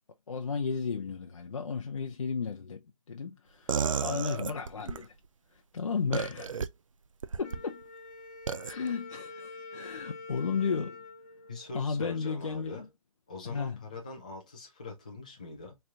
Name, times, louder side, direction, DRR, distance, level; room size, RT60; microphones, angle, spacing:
voice 1, 0.3-5.1 5.5-6.6 7.4-7.8 8.7-11.0 11.7-12.9 13.4-13.8, left 5 dB, 60° left, 0.6 m, -34 dB
sound 1, 3.7-5.0 6.1-6.7 7.2-7.6 8.5-8.7, right 6 dB, 65° right, 0.5 m, -31 dB
Wind instrument woodwind instrument, 7.4-12.2, left 3 dB, 30° left, 1.1 m, -47 dB
voice 2, 11.5-12.9 13.3-15.8, left 3 dB, 15° left, 0.5 m, -42 dB
4.2 x 3.3 x 2.4 m
hypercardioid pair, 175°, 18 cm